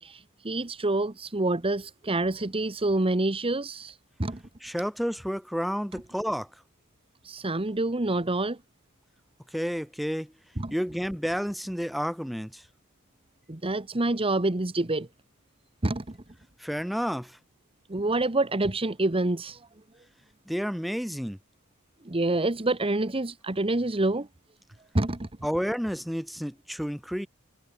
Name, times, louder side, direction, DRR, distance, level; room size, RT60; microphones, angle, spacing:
voice 1, 0.0-4.4 7.2-8.6 10.6-10.7 13.5-15.1 15.8-16.2 17.9-19.6 22.0-24.3 24.9-25.3, right 2 dB, 25° right, 1.2 m, -27 dB
voice 2, 4.6-6.5 9.5-10.3 10.7-12.6 16.6-17.4 20.5-21.4 25.4-27.3, equal, ahead, 4.0 m, -30 dB
head